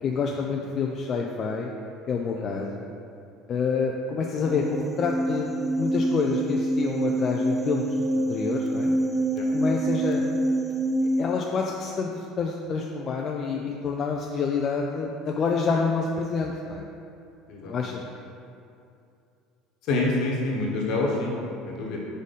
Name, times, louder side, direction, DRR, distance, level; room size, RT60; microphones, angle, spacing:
voice 1, 0.0-1.7 2.1-2.7 3.5-5.5 5.8-8.0 8.3-9.0 9.5-10.2 11.2-16.9 17.6-18.0, left 5 dB, 45° left, 0 dB, 0.5 m, -27 dB
sound 1, 4.4-11.2, right 1 dB, 20° right, 0.5 m, -26 dB
voice 2, 19.9-22.0, left 2 dB, 65° left, -1 dB, 1.2 m, -27 dB
5.1 x 4.1 x 5.2 m, 2.6 s
supercardioid pair, 85°, 0 cm